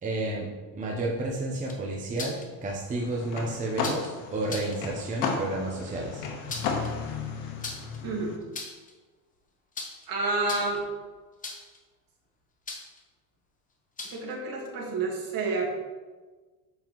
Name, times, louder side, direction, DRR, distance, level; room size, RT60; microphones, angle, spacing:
voice 1, 0.0-6.2, right 2 dB, 15° right, -2 dB, 0.7 m, -31 dB
sound 1, 1.5-2.5 3.8-4.1 4.4-4.8 6.2-6.9 7.6-8.0 8.4-8.9 9.7-10.1 10.4-10.9 11.4-11.8 12.7-13.0 14.0-14.3, left 3 dB, 15° left, 0.8 m, -38 dB
sound 2, 2.9-8.4, left 5 dB, 75° left, 1.2 m, -34 dB
voice 2, 8.0-8.4 10.1-10.8 14.1-15.7, right 3 dB, 45° right, -2 dB, 1.9 m, -29 dB
7.0 x 5.5 x 3.0 m, 1.3 s
supercardioid pair, 125°, 47 cm